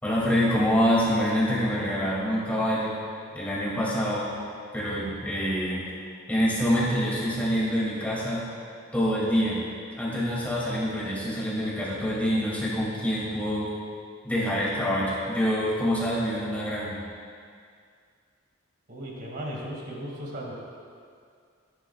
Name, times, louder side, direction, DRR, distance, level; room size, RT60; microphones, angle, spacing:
voice 1, 0.0-3.0 3.3-4.4 4.7-5.9 6.3-8.5 8.9-9.7 10.0-13.7 14.2-17.1, equal, 10° left, -7 dB, 2.7 m, -26 dB
voice 2, 18.9-20.5, equal, 50° right, -3 dB, 2.4 m, -36 dB
15.0 x 10.5 x 2.5 m, 2.3 s
head